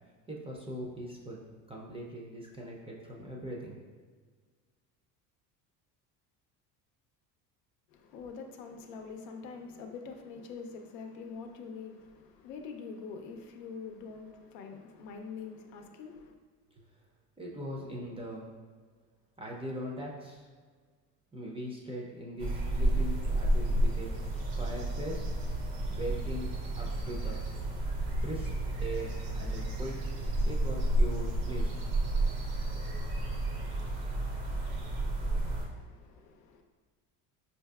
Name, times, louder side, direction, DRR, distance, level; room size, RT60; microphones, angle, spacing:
voice 1, 0.3-3.8 16.7-16.8 17.4-18.5 19.4-20.5 21.3-24.1 24.6-25.2 25.9-26.5 26.8-27.4 28.2-28.5 28.8-30.0 30.5-31.8, equal, 15° right, 0.4 m, -40 dB
voice 2, 7.9-16.3 35.7-36.6, left 5 dB, 85° left, 0.6 m, -45 dB
sound 1, 22.4-35.7, right 1 dB, 80° right, 0.8 m, -31 dB
4.5 x 2.7 x 2.3 m
supercardioid pair, 80°, 48 cm